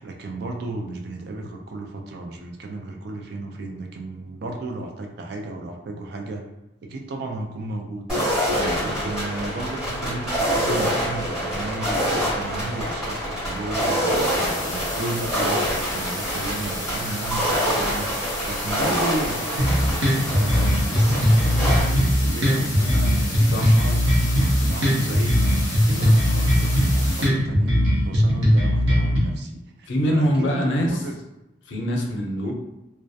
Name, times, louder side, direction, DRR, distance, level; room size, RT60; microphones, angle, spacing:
voice 1, 0.0-6.4 6.8-8.1 8.8-31.1, right 2 dB, 60° right, 2 dB, 0.4 m, -33 dB
sound 1, 8.1-21.8, equal, 5° right, 1.3 m, -26 dB
voice 2, 8.5-8.8 23.4-23.8 25.9-26.2 29.9-31.0 31.6-32.5, equal, 80° left, 0 dB, 0.5 m, -24 dB
sound 2, 14.1-27.3, left 1 dB, 20° left, 0.7 m, -33 dB
sound 3, 19.6-29.2, equal, 80° right, 0.7 m, -19 dB
2.3 x 2.1 x 2.6 m, 0.95 s
head